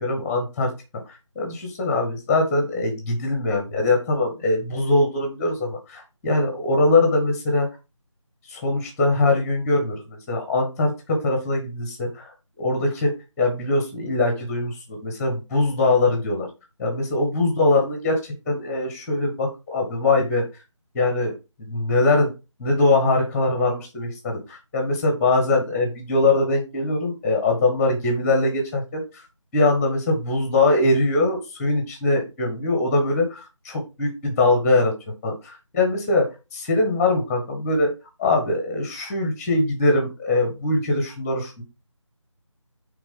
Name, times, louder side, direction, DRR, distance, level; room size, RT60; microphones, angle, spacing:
voice 1, 0.0-7.7 8.5-16.5 16.8-20.4 20.9-21.3 21.6-22.3 22.6-29.2 29.5-34.9 35.2-37.9 38.2-41.6, left 2 dB, 5° left, 3 dB, 1.1 m, -22 dB
8.9 x 3.7 x 5.1 m, 0.27 s
figure-of-eight pair, 165°, 17 cm